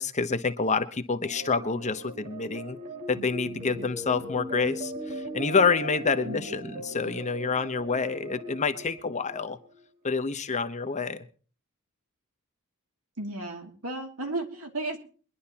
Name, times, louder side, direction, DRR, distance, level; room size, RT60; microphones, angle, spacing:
voice 1, 0.0-2.8 3.1-9.6 10.0-11.2, left 4 dB, 35° left, 10 dB, 0.8 m, -28 dB
sound 1, 1.2-9.8, right 1 dB, 40° right, 2.8 m, -39 dB
voice 2, 13.2-15.0, right 2 dB, 80° right, 3 dB, 2.5 m, -34 dB
23.0 x 11.0 x 2.9 m, 0.40 s
head